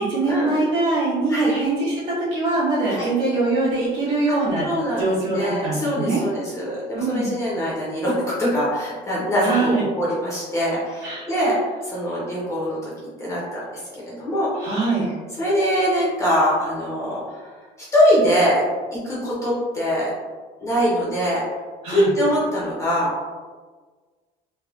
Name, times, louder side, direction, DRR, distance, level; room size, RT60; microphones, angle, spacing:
voice 1, 0.0-4.7 5.0-6.2 6.9-7.3 9.4-9.8 11.0-11.2 14.6-15.0 21.8-22.1, right 2 dB, 50° right, -8 dB, 1.4 m, -22 dB
voice 2, 4.6-12.9 13.2-13.7 13.9-14.5 14.9-15.0 15.4-17.5 17.9-18.6 18.9-20.1 20.6-21.4 21.8-23.1, equal, 20° left, -7 dB, 0.6 m, -23 dB
3.4 x 2.1 x 2.3 m, 1.4 s
cardioid pair, 170°, 17 cm